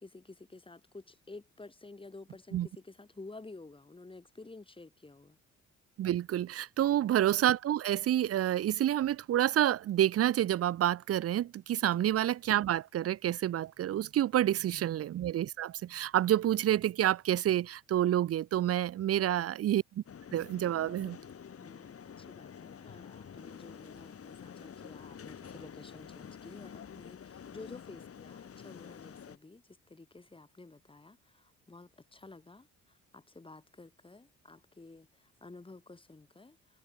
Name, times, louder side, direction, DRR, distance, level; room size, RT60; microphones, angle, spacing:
voice 1, 0.0-5.4 6.8-7.1 11.8-12.0 14.5-14.9 19.2-19.5 21.6-36.8, left 3 dB, 15° left, 2.7 m, -52 dB
voice 2, 6.0-20.0 20.3-21.2, right 12 dB, 50° right, 0.6 m, -28 dB
sound 1, 20.1-29.4, left 7 dB, 50° left, 3.8 m, -48 dB
cardioid pair, 90°, 30 cm